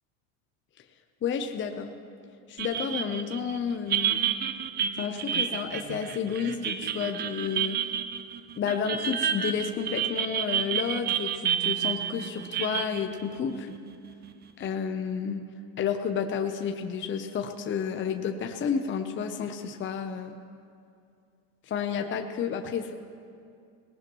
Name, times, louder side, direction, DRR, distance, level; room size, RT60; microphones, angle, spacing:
voice 1, 1.2-1.9 2.5-4.2 5.0-7.8 8.6-13.8 14.6-15.4 15.8-20.3 21.7-22.9, left 7 dB, 25° left, 5 dB, 0.8 m, -31 dB
sound 1, 2.6-14.3, right 9 dB, 25° right, 0.4 m, -30 dB
20.0 x 18.5 x 3.1 m, 2.4 s
supercardioid pair, 105°, 46 cm